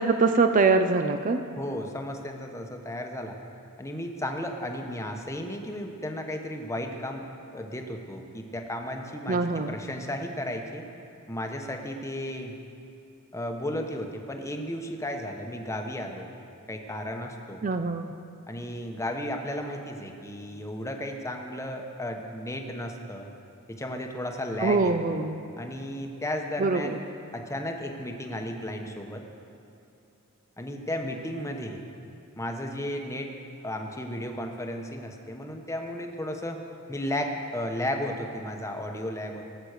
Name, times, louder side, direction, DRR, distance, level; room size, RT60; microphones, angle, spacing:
voice 1, 0.0-1.4 9.3-9.8 17.6-18.1 24.6-25.4 26.6-27.0, right 3 dB, 35° right, 7 dB, 0.5 m, -23 dB
voice 2, 1.6-3.4 3.8-7.2 7.5-10.8 11.3-12.6 13.3-16.3 16.7-17.6 18.5-23.3 23.7-25.2 25.6-27.0 27.3-29.2 30.6-31.9 32.4-33.3 33.6-36.6 36.9-39.4, left 1 dB, 15° left, 3 dB, 1.0 m, -34 dB
18.0 x 8.0 x 6.5 m, 2.6 s
head